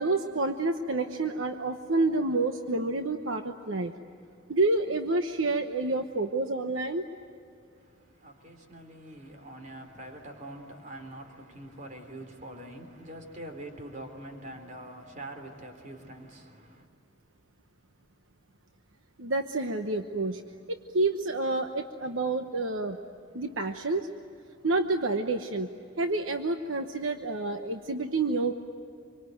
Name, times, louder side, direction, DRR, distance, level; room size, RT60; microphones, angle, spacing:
voice 1, 0.0-3.9 4.5-7.0 19.2-20.4 20.7-23.0 23.3-24.1 24.6-25.7 26.0-28.5, right 2 dB, 85° right, 1.1 m, -28 dB
voice 2, 7.7-16.9, right 1 dB, 40° right, 3.5 m, -44 dB
26.5 x 24.5 x 9.3 m
head